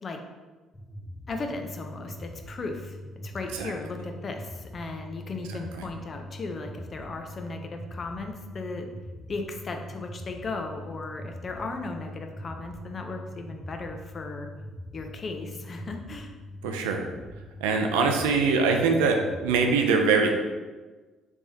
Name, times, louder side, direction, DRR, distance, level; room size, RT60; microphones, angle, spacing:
sound 1, 0.7-19.8, left 1 dB, 15° left, 1.0 m, -42 dB
voice 1, 1.3-3.0 3.2-8.9 9.3-14.5 14.9-16.3, left 3 dB, 45° left, 4 dB, 0.5 m, -36 dB
voice 2, 16.6-17.1 17.6-20.3, right 4 dB, 80° right, 4 dB, 0.4 m, -23 dB
3.4 x 3.3 x 2.6 m, 1.3 s
hypercardioid pair, 50°, 0 cm